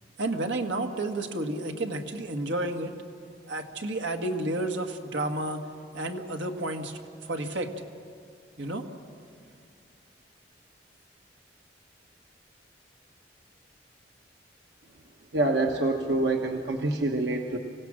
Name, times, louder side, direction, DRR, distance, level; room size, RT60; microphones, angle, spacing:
voice 1, 0.2-2.9 3.5-5.6 5.9-7.7 8.6-8.9, right 2 dB, 85° right, 4 dB, 1.6 m, -31 dB
voice 2, 15.3-17.6, right 2 dB, 70° right, 2 dB, 1.2 m, -26 dB
25.0 x 16.5 x 7.5 m, 2.3 s
head